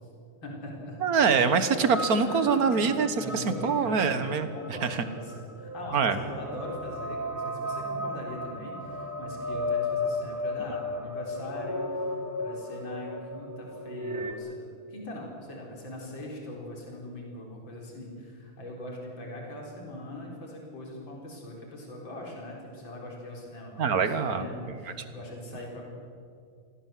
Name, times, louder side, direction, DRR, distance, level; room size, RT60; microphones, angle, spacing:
voice 1, 0.4-1.0 2.2-25.9, left 1 dB, 60° left, -1 dB, 4.8 m, -41 dB
voice 2, 1.0-4.5 4.8-5.0 5.9-6.2 23.8-24.5, right 5 dB, 50° right, 10 dB, 1.6 m, -24 dB
sound 1, 1.9-14.3, left 2 dB, 10° right, 0.9 m, -35 dB
25.5 x 17.0 x 7.6 m, 2.4 s
omnidirectional pair, 2.3 m